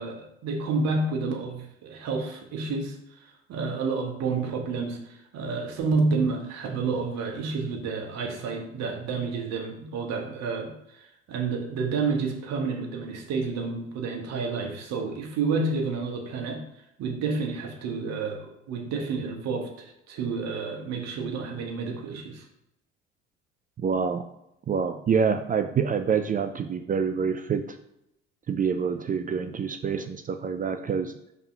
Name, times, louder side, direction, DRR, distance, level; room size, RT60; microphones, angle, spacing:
voice 1, 0.0-16.7 17.0-22.4, right 4 dB, 55° right, 3 dB, 1.4 m, -30 dB
voice 2, 23.8-24.2 24.7-27.6 28.5-31.1, right 6 dB, 25° right, 9 dB, 0.5 m, -26 dB
5.4 x 3.7 x 5.7 m, 0.82 s
hypercardioid pair, 60°, 31 cm